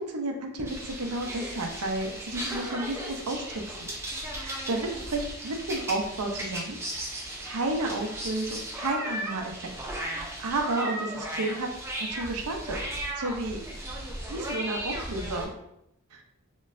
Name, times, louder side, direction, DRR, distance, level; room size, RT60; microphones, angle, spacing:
voice 1, 0.0-3.9 4.3-6.8 7.1-9.7 10.1-11.7 12.0-12.8 13.2-13.6 14.3-15.5 16.1-16.2, right 2 dB, 85° right, 3 dB, 0.6 m, -32 dB
sound 1, 0.6-15.4, right 1 dB, 10° right, 0.6 m, -36 dB
4.2 x 3.0 x 2.5 m, 0.80 s
head